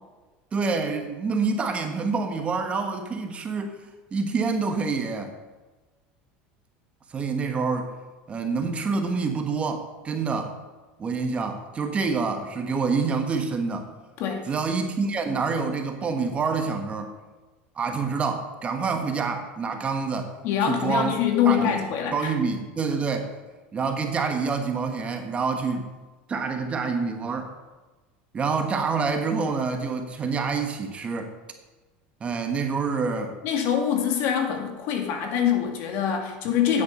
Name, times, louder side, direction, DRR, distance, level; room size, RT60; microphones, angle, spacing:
voice 1, 0.5-3.8 4.1-5.3 7.1-7.9 8.3-10.5 11.0-13.9 14.5-17.1 17.7-20.3 20.6-21.1 21.4-21.7 22.1-23.3 23.7-25.9 26.3-27.5 28.3-31.3 32.2-33.4, right 4 dB, 25° right, 5 dB, 1.2 m, -27 dB
voice 2, 20.4-22.3 33.4-36.8, left 8 dB, 60° left, 3 dB, 2.1 m, -24 dB
9.4 x 8.0 x 5.3 m, 1.2 s
supercardioid pair, 125°, 5 cm